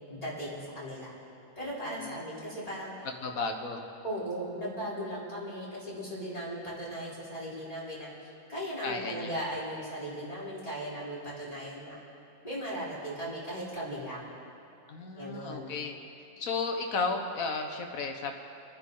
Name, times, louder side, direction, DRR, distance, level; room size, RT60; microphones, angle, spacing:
voice 1, 0.1-1.1 1.6-2.9 4.0-12.0 12.4-14.3 15.2-15.7, equal, 25° left, -8 dB, 4.2 m, -37 dB
voice 2, 3.2-3.8 8.8-9.3 14.9-15.9 16.4-18.3, left 4 dB, 85° left, 3 dB, 1.7 m, -33 dB
29.5 x 10.0 x 3.8 m, 2.8 s
omnidirectional pair, 1.4 m